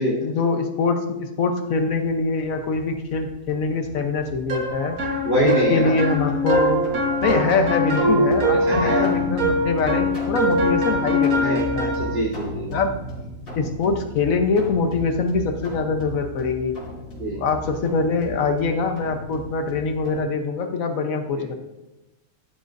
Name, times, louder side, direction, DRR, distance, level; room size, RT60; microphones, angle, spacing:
voice 1, 0.0-5.0 5.4-6.9 7.2-11.9 12.7-12.9 13.5-16.7 17.4-21.5, left 4 dB, 70° left, 5 dB, 1.4 m, -24 dB
sound 1, 1.7-20.2, equal, 55° left, 4.8 m, -38 dB
sound 2, 4.5-12.2, left 1 dB, 75° right, 2.0 m, -22 dB
voice 2, 5.2-6.0 8.7-9.1 10.9-12.8 17.2-17.4 21.3-21.4, equal, 45° right, -5 dB, 4.4 m, -24 dB
15.0 x 12.5 x 2.7 m, 1.0 s
omnidirectional pair, 1.5 m